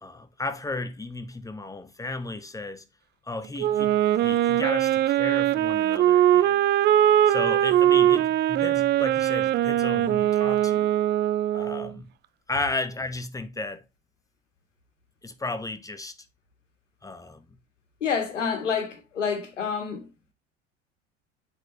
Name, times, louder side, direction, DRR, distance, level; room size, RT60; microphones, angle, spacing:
voice 1, 0.0-2.9 3.2-6.6 7.3-10.9 11.5-12.1 12.5-13.8 15.2-16.1 17.0-17.5, left 2 dB, 10° left, 0.9 m, -34 dB
Wind instrument woodwind instrument, 3.6-11.9, right 12 dB, 30° right, 0.4 m, -21 dB
voice 2, 18.0-20.3, left 6 dB, 75° left, 1.9 m, -28 dB
7.9 x 4.6 x 3.2 m
figure-of-eight pair, 70°, 37 cm